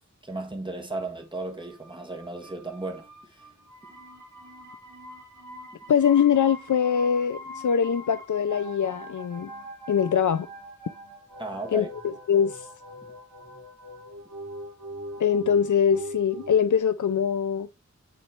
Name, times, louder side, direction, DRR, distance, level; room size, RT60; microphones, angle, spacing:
voice 1, 0.2-3.5 11.4-11.9, right 2 dB, 15° right, 1.7 m, -35 dB
sound 1, 1.4-16.6, equal, 80° right, 2.3 m, -42 dB
voice 2, 5.9-9.5 9.9-10.5 11.7-12.7 15.2-17.7, left 8 dB, 85° left, 0.5 m, -23 dB
9.2 x 3.1 x 4.5 m
wide cardioid pair, 60°, 29 cm